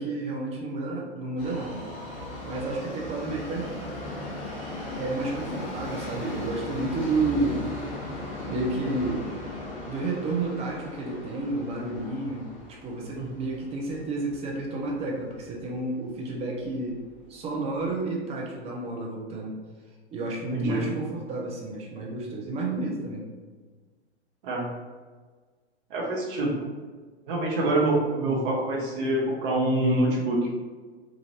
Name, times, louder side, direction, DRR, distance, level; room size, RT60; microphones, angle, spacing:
voice 1, 0.0-1.8 2.4-3.7 5.0-7.6 8.5-9.3 9.9-17.0 17.3-19.5 20.1-23.2, right 2 dB, 20° right, -2 dB, 0.6 m, -31 dB
Subway metro underground, 1.4-15.5 15.8-15.9 16.7-16.8 17.1-17.2 17.8-17.9, left 1 dB, 35° left, 1.1 m, -38 dB
voice 2, 13.1-13.5 20.5-21.0 24.4-24.7 25.9-26.7 27.3-30.6, right 1 dB, 50° right, -3 dB, 0.9 m, -26 dB
3.0 x 2.4 x 2.8 m, 1.4 s
figure-of-eight pair, 100°, 34 cm